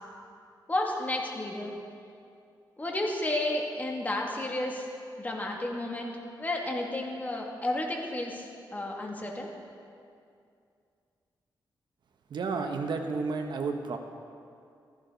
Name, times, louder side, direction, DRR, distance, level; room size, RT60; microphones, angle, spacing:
voice 1, 0.7-1.7 2.8-4.9 5.2-8.4 8.7-9.5, left 1 dB, 20° left, -1 dB, 2.4 m, -32 dB
voice 2, 12.3-14.0, right 4 dB, 70° right, 5 dB, 1.1 m, -31 dB
16.0 x 15.0 x 4.0 m, 2.4 s
cardioid pair, 85°, 8 cm